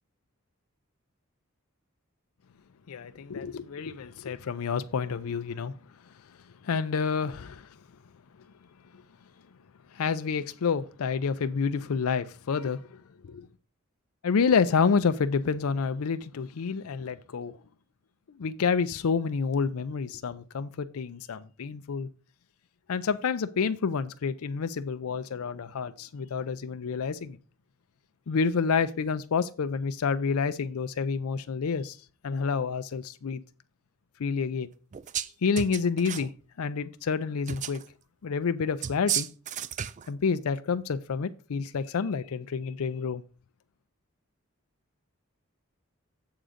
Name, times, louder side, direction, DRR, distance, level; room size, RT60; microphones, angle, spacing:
voice 1, 2.9-5.7 6.6-7.7 9.9-13.5 14.2-17.6 18.4-22.1 22.9-27.4 28.3-32.0 32.2-33.4 34.2-34.7 35.4-36.3 36.6-37.8 38.2-39.3 40.1-43.2, left 5 dB, 90° left, 0.5 m, -29 dB
sound 1, 34.9-35.3 35.6-36.3 37.5-37.9 38.8-40.1, right 10 dB, 35° right, 0.3 m, -33 dB
8.0 x 3.8 x 6.4 m
head